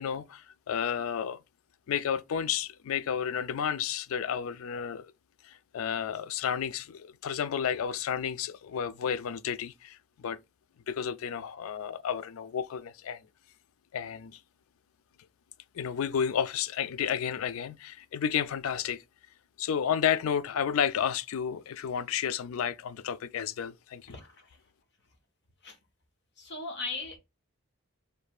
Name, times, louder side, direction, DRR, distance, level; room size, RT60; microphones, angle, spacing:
voice 1, 0.0-1.4 1.9-5.1 5.4-10.4 10.9-13.2 13.9-14.4 15.7-19.0 19.6-24.2, left 8 dB, 75° left, 0.3 m, -31 dB
voice 2, 24.1-24.6 25.6-25.8 26.4-27.2, left 3 dB, 55° left, 1.2 m, -38 dB
4.9 x 3.2 x 2.4 m
head